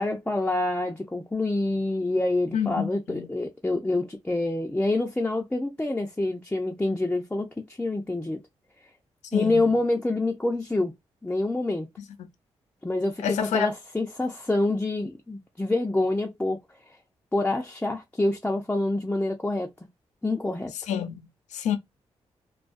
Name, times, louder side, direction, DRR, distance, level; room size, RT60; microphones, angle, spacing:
voice 1, 0.0-8.4 9.3-10.9 11.2-11.9 12.8-16.6 17.3-19.7 20.2-20.7, left 2 dB, 10° left, 0.5 m, -27 dB
voice 2, 2.5-3.3 9.3-9.8 13.2-13.7 20.7-21.8, left 8 dB, 85° left, 0.5 m, -29 dB
2.3 x 2.2 x 2.5 m
supercardioid pair, 50°, 12 cm